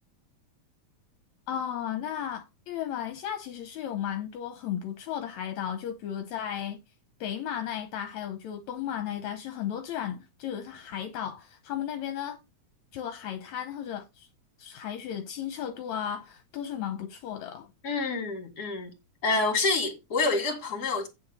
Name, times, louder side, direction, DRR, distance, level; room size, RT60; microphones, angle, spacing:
voice 1, 1.5-6.8 7.2-12.4 12.9-14.3 14.6-17.7, left 9 dB, 75° left, 2.1 m, -34 dB
voice 2, 17.8-18.9 19.2-21.1, left 3 dB, 35° left, 2.8 m, -27 dB
9.2 x 7.0 x 4.0 m
omnidirectional pair, 3.4 m